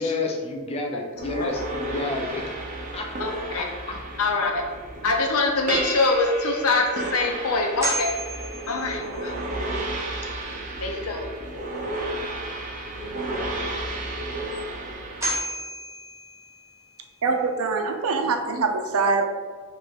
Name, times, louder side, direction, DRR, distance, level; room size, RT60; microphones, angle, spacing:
voice 1, 0.0-4.0, left 3 dB, 30° left, 2 dB, 0.5 m, -31 dB
sound 1, 1.2-15.4, right 2 dB, 35° right, 0.6 m, -32 dB
voice 2, 3.2-3.6 4.2-4.6 5.0-8.1 8.7-9.3 10.8-11.3, left 3 dB, 90° left, 2 dB, 0.8 m, -24 dB
sound 2, 6.4-6.5 7.0-7.1 7.8-9.4 14.5-14.6 15.2-16.9, right 1 dB, 15° right, 1.2 m, -32 dB
voice 3, 17.2-19.3, right 4 dB, 80° right, 5 dB, 0.5 m, -23 dB
5.1 x 2.5 x 3.6 m, 1.5 s
head